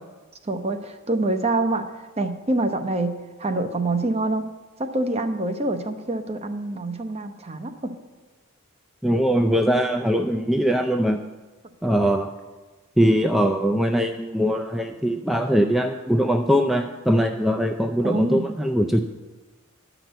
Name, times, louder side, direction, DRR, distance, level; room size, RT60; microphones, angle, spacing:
voice 1, 0.4-1.9 2.2-4.4 4.8-7.9 18.0-18.4, right 2 dB, 30° right, 8 dB, 0.7 m, -26 dB
voice 2, 9.0-11.2 11.8-12.3 13.0-19.0, equal, ahead, 4 dB, 0.3 m, -21 dB
10.5 x 6.0 x 8.0 m, 1.2 s
head